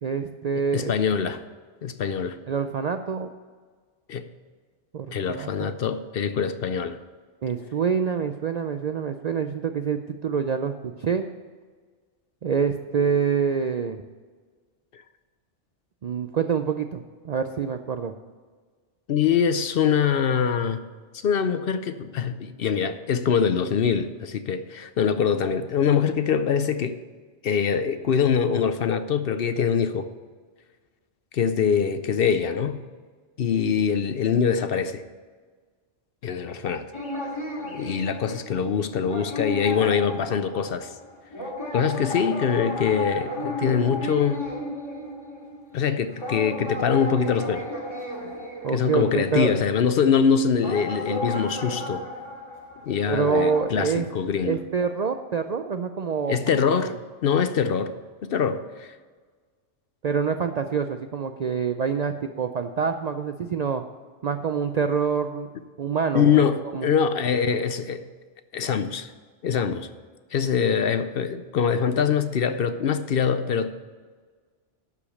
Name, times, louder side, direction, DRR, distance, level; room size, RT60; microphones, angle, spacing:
voice 1, 0.0-0.9 2.5-3.3 4.9-5.7 7.4-11.3 12.4-14.0 16.0-18.1 48.6-49.6 53.1-54.1 54.4-56.8 60.0-63.8 64.2-65.5 65.8-66.4 66.7-66.9, right 6 dB, 60° right, 7 dB, 0.4 m, -26 dB
voice 2, 0.7-1.4 1.8-2.4 4.1-4.3 5.1-7.0 14.9-15.0 19.1-20.8 21.1-27.0 27.4-30.1 31.3-32.8 33.4-35.0 36.2-36.9 37.7-40.9 41.7-44.4 45.7-47.7 48.7-52.0 52.9-54.6 56.3-56.9 57.2-57.9 58.2-58.9 66.1-68.1 68.5-69.1 69.4-69.9 70.3-73.8, left 7 dB, 60° left, 11 dB, 0.7 m, -23 dB
sound 1, 36.9-49.5 50.6-53.6, left 1 dB, 25° left, 1.8 m, -33 dB
12.0 x 5.1 x 7.0 m, 1.5 s
omnidirectional pair, 1.2 m